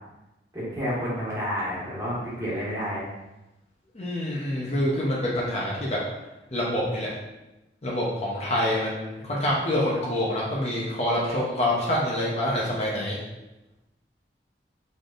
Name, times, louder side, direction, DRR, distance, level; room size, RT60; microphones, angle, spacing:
voice 1, 0.5-3.1, equal, 20° right, -9 dB, 1.4 m, -30 dB
voice 2, 3.9-6.0 6.5-7.1 7.8-13.2, left 1 dB, 35° left, -5 dB, 0.6 m, -26 dB
4.0 x 3.4 x 2.4 m, 0.99 s
head